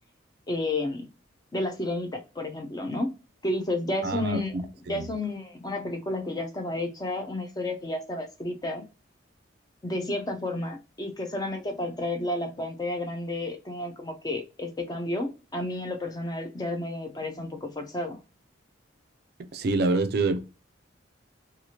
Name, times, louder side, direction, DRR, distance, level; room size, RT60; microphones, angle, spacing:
voice 1, 0.5-1.1 1.5-3.1 3.4-4.6 4.9-8.8 9.8-18.2, left 2 dB, 20° left, 0.4 m, -31 dB
voice 2, 4.0-5.1 19.5-20.4, right 3 dB, 50° right, 0.4 m, -27 dB
2.8 x 2.4 x 2.8 m
head